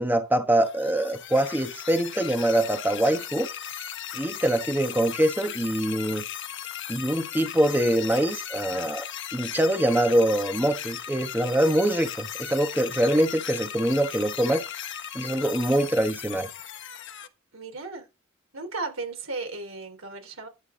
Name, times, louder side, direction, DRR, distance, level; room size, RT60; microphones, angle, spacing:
voice 1, 0.0-3.5 4.1-6.2 6.9-9.0 9.3-14.6 15.1-16.5, right 1 dB, 10° right, 1.3 m, -24 dB
sound 1, 0.6-17.3, left 10 dB, 60° left, 1.2 m, -37 dB
voice 2, 17.5-18.1 18.5-20.5, right 3 dB, 70° right, 3.6 m, -35 dB
11.5 x 8.1 x 3.9 m
head